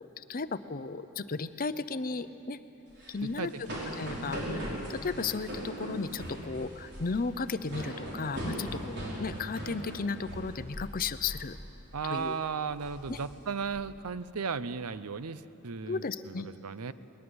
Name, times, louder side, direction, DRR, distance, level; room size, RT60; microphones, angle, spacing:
voice 1, 0.0-2.6 3.1-3.7 4.0-11.6 12.1-12.4 13.1-13.2 15.9-16.5, left 4 dB, 40° left, 12 dB, 0.6 m, -35 dB
sound 1, 2.9-11.0 11.2-11.5 11.9-12.2 12.7-13.8, equal, 50° right, 4.6 m, -39 dB
voice 2, 3.2-3.8 11.9-16.9, right 5 dB, 85° right, 14 dB, 0.7 m, -36 dB
21.0 x 20.0 x 7.9 m, 2.9 s
head